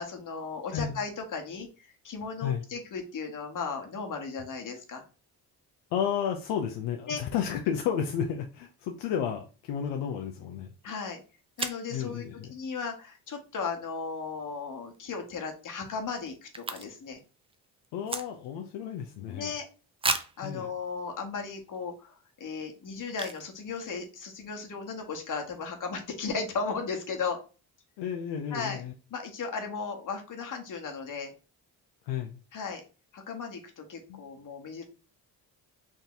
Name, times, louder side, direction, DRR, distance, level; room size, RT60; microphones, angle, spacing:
voice 1, 0.0-5.0 7.1-7.2 10.8-11.2 11.6-17.2 19.3-19.6 20.4-27.4 28.5-28.8 29.1-31.3 32.5-32.8 33.1-34.8, left 5 dB, 50° left, 3 dB, 1.3 m, -36 dB
voice 2, 5.9-10.7 11.9-12.5 17.9-19.5 20.4-20.7 28.0-28.9 32.1-32.4 34.1-34.2, left 8 dB, 90° left, 2 dB, 0.6 m, -32 dB
sound 1, 11.6-11.9 14.9-15.1 15.4-15.5 15.7-17.2 17.4-18.7 19.2-19.3 20.0-20.5 21.1-21.2 21.7-21.9 23.1-23.5 23.8-23.9 24.1-24.4, right 3 dB, 15° right, 0.4 m, -34 dB
3.6 x 2.7 x 4.0 m, 0.34 s
cardioid pair, 75°, 40 cm